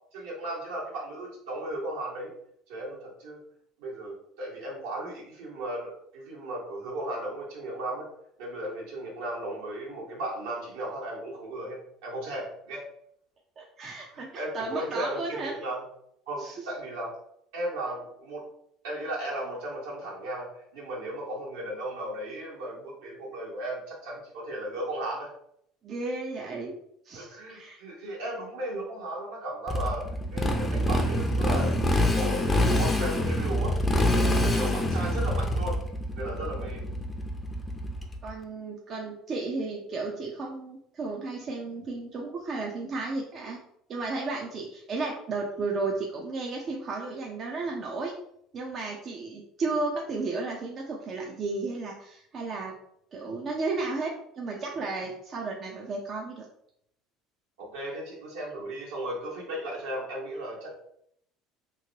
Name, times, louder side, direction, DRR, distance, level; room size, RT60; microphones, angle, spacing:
voice 1, 0.1-2.3 2.7-3.4 3.8-8.0 8.4-12.8 14.1-15.8 16.3-17.1 17.5-18.4 18.8-25.3 27.1-31.8 32.1-34.1 34.4-35.8 36.2-36.8 57.6-60.7, right 1 dB, 80° right, -5 dB, 1.4 m, -35 dB
voice 2, 13.6-15.5 16.4-16.7 25.8-26.7 27.0-27.8 36.3-36.4 38.2-43.6 43.9-48.1 48.5-52.7 53.1-56.4, right 3 dB, 45° right, -1 dB, 0.6 m, -33 dB
Motorcycle, 29.7-38.3, left 1 dB, 15° left, 0.6 m, -26 dB
3.1 x 2.8 x 2.8 m, 0.71 s
hypercardioid pair, 70°, 0 cm